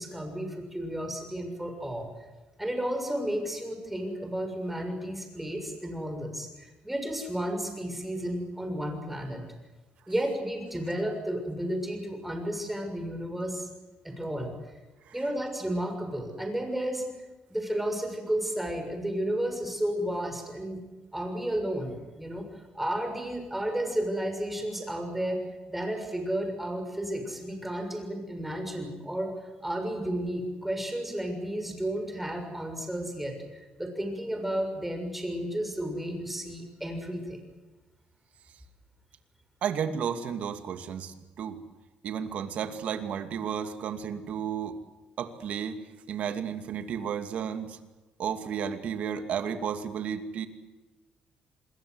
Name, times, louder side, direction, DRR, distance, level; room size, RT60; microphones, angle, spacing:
voice 1, 0.0-2.1 2.6-9.4 10.1-13.7 14.0-14.8 15.1-17.1 17.5-20.8 21.1-25.4 25.7-29.3 29.6-37.4, right 1 dB, 5° right, 5 dB, 6.6 m, -32 dB
voice 2, 39.6-41.6 42.0-44.8 45.2-45.8 46.1-47.8 48.2-50.5, right 8 dB, 65° right, 8 dB, 2.4 m, -33 dB
27.0 x 21.5 x 8.1 m, 1.1 s
cardioid pair, 115°, 3 cm